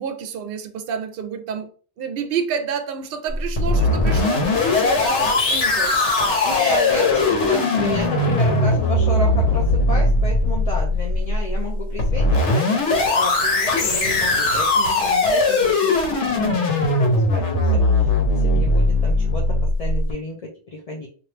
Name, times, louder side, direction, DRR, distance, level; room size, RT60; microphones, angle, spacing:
voice 1, 0.0-1.7 2.0-6.3, right 7 dB, 60° right, 0.7 m, -29 dB
sound 1, 3.3-20.1, left 2 dB, 80° left, 1.1 m, -19 dB
voice 2, 6.4-21.1, left 2 dB, 40° left, 0.6 m, -31 dB
3.0 x 2.5 x 3.2 m
omnidirectional pair, 1.2 m